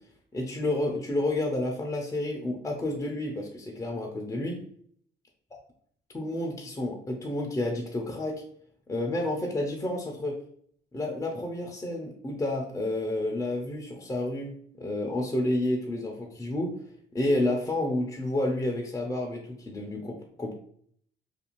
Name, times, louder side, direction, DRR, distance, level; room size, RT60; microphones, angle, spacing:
voice 1, 0.3-4.6 6.1-8.4 8.9-10.3 10.9-16.7 17.1-20.5, left 1 dB, 15° left, 0 dB, 0.5 m, -30 dB
2.4 x 2.3 x 3.0 m, 0.62 s
cardioid pair, 90°, 20 cm